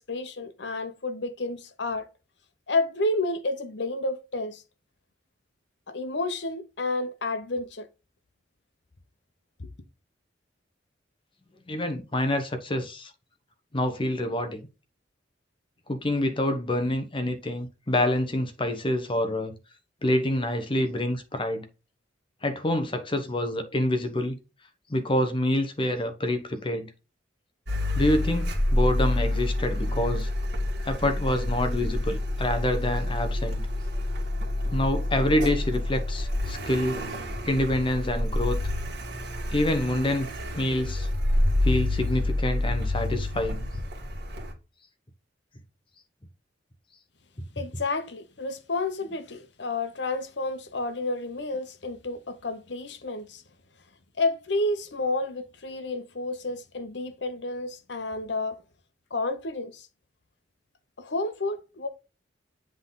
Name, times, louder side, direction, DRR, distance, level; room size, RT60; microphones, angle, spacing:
voice 1, 0.0-2.1 2.7-4.6 5.9-7.9 9.6-9.7 47.6-53.4 54.2-58.6 59.1-59.9 61.0-61.9, left 2 dB, 70° left, 1.0 m, -30 dB
voice 2, 11.7-13.1 13.7-14.7 15.9-19.5 20.0-21.6 22.4-24.4 24.9-26.9 27.9-30.3 30.8-33.7 34.7-37.0 37.4-38.6 39.5-41.1 41.6-43.6, left 1 dB, 30° left, 1.0 m, -27 dB
Car, 27.7-44.5, left 1 dB, 60° right, 2.0 m, -28 dB
7.9 x 3.9 x 3.9 m
head